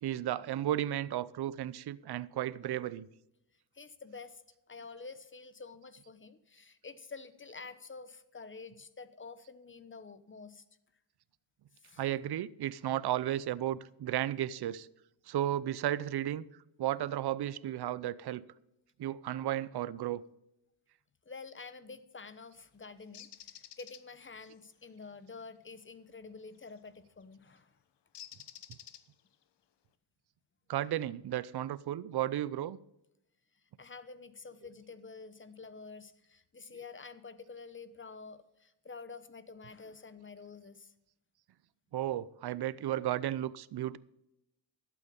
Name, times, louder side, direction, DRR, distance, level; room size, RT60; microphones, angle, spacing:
voice 1, 0.0-3.1 12.0-14.9 15.3-16.4 16.8-18.4 19.0-20.2 30.7-32.8 41.9-44.0, right 12 dB, 55° right, 0.7 m, -34 dB
voice 2, 3.7-4.4 4.7-10.6 11.8-12.0 21.2-27.8 33.8-40.9, left 4 dB, 25° left, 1.0 m, -49 dB
Bird, 23.1-24.0 26.6-26.9 28.1-29.3, left 10 dB, 60° left, 1.1 m, -50 dB
12.0 x 8.6 x 5.2 m
cardioid pair, 95°, 48 cm